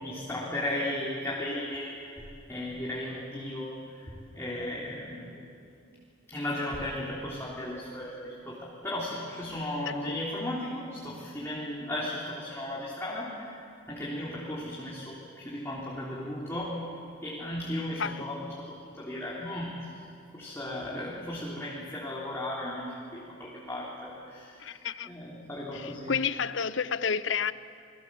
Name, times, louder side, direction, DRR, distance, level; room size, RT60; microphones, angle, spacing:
voice 1, 0.0-5.4 6.3-16.8 17.2-19.9 20.3-26.2, left 1 dB, 15° left, -6 dB, 3.3 m, -36 dB
voice 2, 9.9-10.2 17.7-18.2 24.6-25.1 25.7-27.5, left 6 dB, 70° left, 15 dB, 0.7 m, -31 dB
28.5 x 22.0 x 7.7 m, 2.5 s
head